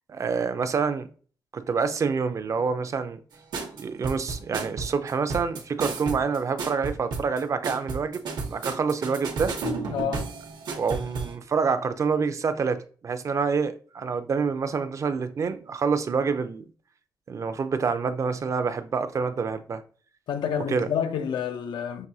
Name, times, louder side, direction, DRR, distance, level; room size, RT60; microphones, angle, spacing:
voice 1, 0.1-1.1 1.5-3.2 3.7-9.5 10.8-16.6 17.3-19.8 20.7-20.9, right 5 dB, 45° right, 0.4 m, -27 dB
sound 1, 3.5-11.3, right 4 dB, 75° right, 0.8 m, -32 dB
voice 2, 9.9-10.3 20.3-22.1, left 8 dB, 90° left, 0.5 m, -29 dB
5.9 x 2.6 x 2.7 m
cardioid pair, 115°, 7 cm